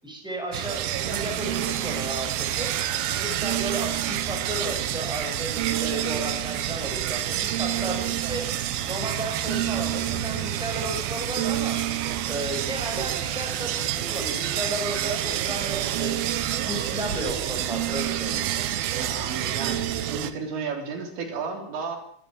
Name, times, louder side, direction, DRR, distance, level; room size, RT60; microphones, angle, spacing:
voice 1, 0.0-2.7 3.1-8.5 8.8-11.8 12.3-16.3 16.6-18.6, right 1 dB, ahead, 2 dB, 6.2 m, -34 dB
sound 1, 0.5-20.3, right 12 dB, 70° right, 2.7 m, -28 dB
voice 2, 18.9-22.0, right 5 dB, 85° right, 4 dB, 5.8 m, -33 dB
25.0 x 12.5 x 9.0 m, 0.64 s
omnidirectional pair, 5.0 m